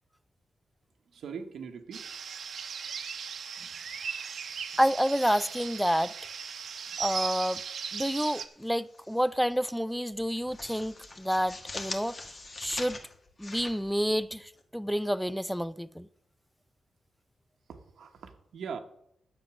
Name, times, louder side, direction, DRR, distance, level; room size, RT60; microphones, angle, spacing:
voice 1, 1.1-2.0 17.7-18.8, right 6 dB, 85° right, 1.1 m, -41 dB
sound 1, 1.9-8.5, right 6 dB, 65° right, 0.9 m, -38 dB
voice 2, 4.8-6.1 7.0-7.6 7.9-12.2 12.6-13.0 13.4-16.1, equal, ahead, 0.3 m, -29 dB
sound 2, 8.5-9.2 9.5-9.7 10.1-14.6, left 2 dB, 30° left, 1.4 m, -43 dB
10.5 x 8.0 x 6.1 m
wide cardioid pair, 165°, 0 cm